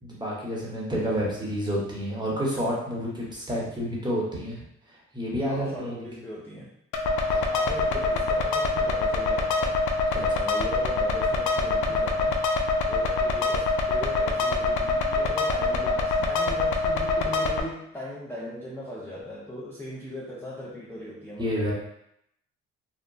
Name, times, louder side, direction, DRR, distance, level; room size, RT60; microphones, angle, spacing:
voice 1, 0.0-4.6 5.1-5.9 10.1-10.3 11.8-11.9 21.4-21.7, equal, 15° right, -5 dB, 0.9 m, -29 dB
voice 2, 5.4-6.7 7.1-9.8 10.2-12.4 12.9-21.5, equal, 5° left, -7 dB, 0.5 m, -39 dB
sound 1, 6.9-17.6, left 3 dB, 70° left, 0.5 m, -25 dB
2.8 x 2.1 x 2.6 m, 0.76 s
cardioid pair, 90°, 30 cm